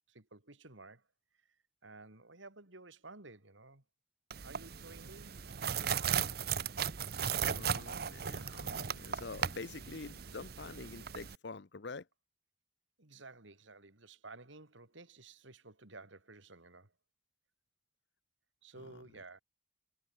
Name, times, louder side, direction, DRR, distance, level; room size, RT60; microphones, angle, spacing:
voice 1, 0.1-1.1 1.3-1.6 1.8-3.8 4.4-6.2 13.0-16.9 18.6-19.4, right 3 dB, 75° right, 2.8 m, -54 dB
sound 1, 4.3-11.4, right 7 dB, 50° right, 0.7 m, -37 dB
voice 2, 7.4-12.1, left 3 dB, 60° left, 0.7 m, -46 dB
head